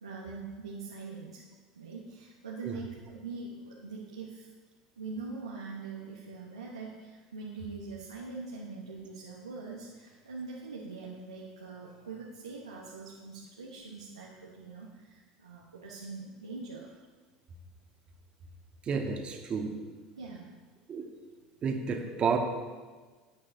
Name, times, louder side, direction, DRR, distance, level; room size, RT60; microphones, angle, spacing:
voice 1, 0.0-1.4 1.7-4.5 5.0-16.9 20.1-20.5, right 4 dB, 90° right, -5 dB, 1.1 m, -43 dB
voice 2, 18.9-19.7 20.9-21.1 21.6-22.4, right 6 dB, 35° right, 3 dB, 1.4 m, -30 dB
11.5 x 8.7 x 2.7 m, 1.4 s
hypercardioid pair, 75°, 3 cm